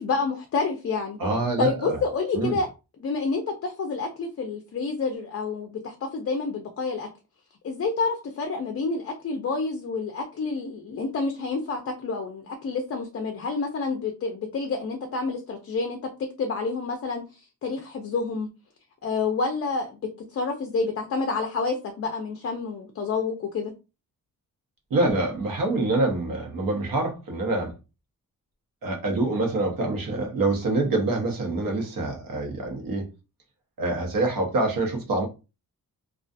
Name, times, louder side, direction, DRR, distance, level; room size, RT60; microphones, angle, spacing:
voice 1, 0.0-1.2 1.6-2.7 3.0-7.1 7.6-16.0 16.4-18.5 19.0-20.0 20.3-23.7, left 4 dB, 45° left, 0.4 m, -28 dB
voice 2, 1.2-2.0 2.3-2.6 24.9-27.7 28.8-33.1 33.8-35.3, right 2 dB, 70° right, 0.9 m, -25 dB
2.3 x 2.3 x 2.5 m
wide cardioid pair, 165°, 35 cm